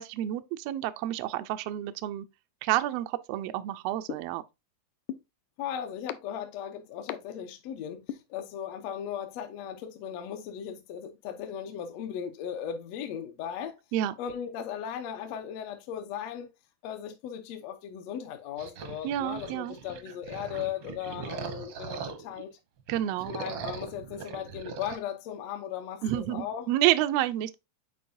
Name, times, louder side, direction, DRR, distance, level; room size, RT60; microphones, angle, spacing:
voice 1, 0.0-2.2 2.6-4.4 13.9-14.1 19.0-19.8 22.9-23.3 26.0-27.6, right 13 dB, 85° right, 1.4 m, -29 dB
sound 1, 4.1-4.2 5.1-5.2 6.1-6.2 7.1-7.2 8.1-8.2, left 12 dB, 85° left, 2.0 m, -33 dB
voice 2, 5.6-13.8 14.2-16.5 16.8-22.5 23.2-26.7, left 9 dB, 70° left, 1.7 m, -37 dB
sound 2, 18.6-22.4 22.8-25.0, right 6 dB, 65° right, 1.1 m, -40 dB
8.6 x 4.6 x 2.6 m
omnidirectional pair, 3.4 m